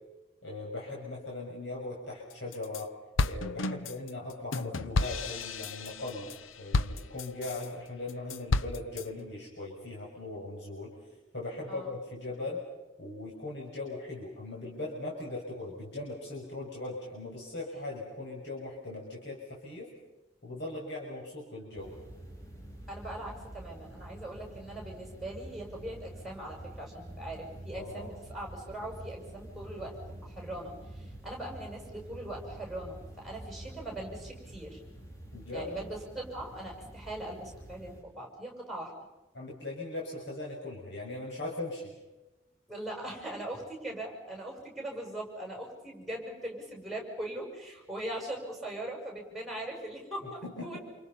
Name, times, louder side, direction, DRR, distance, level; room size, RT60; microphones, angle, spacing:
voice 1, 0.4-3.0 3.2-10.9 11.3-12.7 13.0-19.9 20.4-21.9 27.7-28.1 35.3-35.7 39.3-41.9 50.4-50.8, left 2 dB, 60° left, -3 dB, 6.5 m, -39 dB
sound 1, 2.3-2.8 3.2-7.7 8.1-9.1, left 3 dB, 90° left, 0.8 m, -32 dB
sound 2, 21.8-38.0, right 1 dB, 15° left, 7.8 m, -47 dB
voice 2, 22.9-34.8 35.5-38.9 42.7-50.8, right 1 dB, ahead, 0 dB, 7.3 m, -40 dB
29.5 x 28.5 x 5.6 m, 1.1 s
head